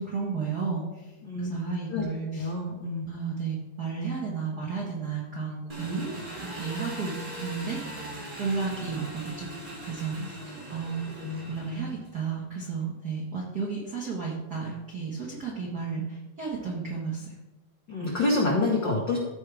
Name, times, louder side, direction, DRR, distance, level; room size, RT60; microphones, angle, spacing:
voice 1, 0.0-1.1 1.4-2.5 3.1-6.1 6.4-7.1 7.4-9.5 9.8-10.4 10.7-11.1 11.5-17.4, right 5 dB, 85° right, -4 dB, 0.8 m, -33 dB
voice 2, 1.2-1.5 1.9-2.0 2.3-3.1 10.2-10.3 11.2-11.5 17.9-19.2, left 2 dB, 80° left, -2 dB, 1.0 m, -27 dB
Engine, 5.7-12.2, right 1 dB, 55° right, 0.5 m, -40 dB
14.5 x 4.8 x 3.4 m, 1.1 s
omnidirectional pair, 4.1 m